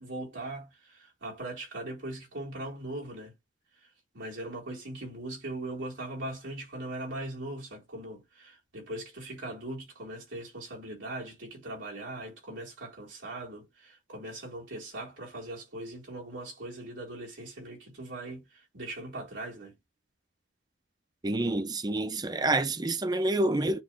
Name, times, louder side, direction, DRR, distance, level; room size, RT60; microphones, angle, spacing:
voice 1, 0.0-3.3 3.8-3.9 4.1-19.8, right 1 dB, 75° right, 3.8 m, -40 dB
voice 2, 21.2-23.8, right 2 dB, 20° right, 0.6 m, -28 dB
10.0 x 3.4 x 3.0 m
head